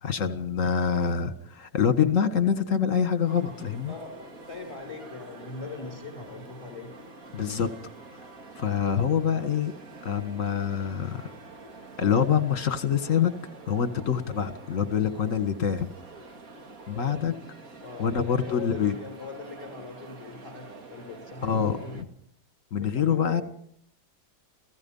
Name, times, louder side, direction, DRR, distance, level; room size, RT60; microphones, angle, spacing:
voice 1, 0.0-3.9 7.3-7.7 8.6-9.7 10.0-11.3 12.0-13.3 13.7-15.9 16.9-17.4 18.0-19.0 21.4-22.1 22.7-23.4, left 7 dB, 50° left, 11 dB, 2.0 m, -25 dB
sound 1, 3.2-22.0, right 3 dB, 55° right, 2.4 m, -47 dB
voice 2, 3.9-7.0 17.8-22.0 22.7-23.4, left 3 dB, 20° left, 4 dB, 6.8 m, -41 dB
30.0 x 16.5 x 5.6 m, 0.66 s
omnidirectional pair, 1.9 m